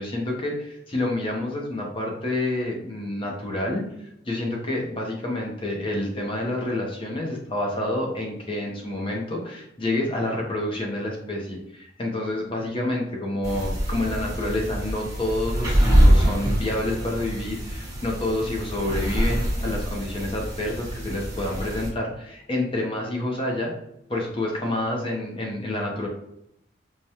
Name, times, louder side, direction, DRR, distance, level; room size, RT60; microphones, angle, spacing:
voice 1, 0.0-3.8 4.3-23.7 24.1-26.1, left 1 dB, 30° left, -1 dB, 0.6 m, -28 dB
sound 1, 13.4-21.9, equal, 20° right, 1.1 m, -24 dB
4.7 x 2.2 x 2.8 m, 0.78 s
head